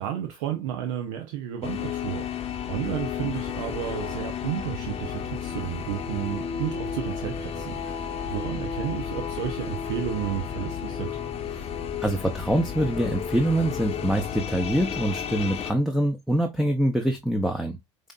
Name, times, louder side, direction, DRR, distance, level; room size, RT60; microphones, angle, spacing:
voice 1, 0.0-11.2, right 11 dB, 70° right, 0.8 m, -32 dB
sound 1, 1.6-15.7, left 7 dB, 40° left, 0.8 m, -32 dB
voice 2, 12.0-17.8, right 1 dB, ahead, 0.7 m, -25 dB
4.9 x 2.8 x 2.4 m
hypercardioid pair, 70°, 16 cm